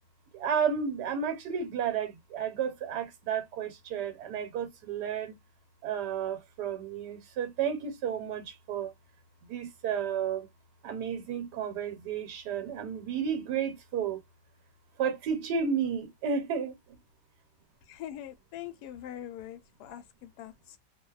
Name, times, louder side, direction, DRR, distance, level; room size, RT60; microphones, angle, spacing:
voice 1, 0.3-5.3 5.8-8.9 9.5-10.5 10.8-14.2 15.0-16.7, right 7 dB, 70° right, 1.4 m, -32 dB
voice 2, 17.9-20.8, left 11 dB, 70° left, 1.1 m, -43 dB
3.0 x 2.1 x 2.3 m
omnidirectional pair, 1.9 m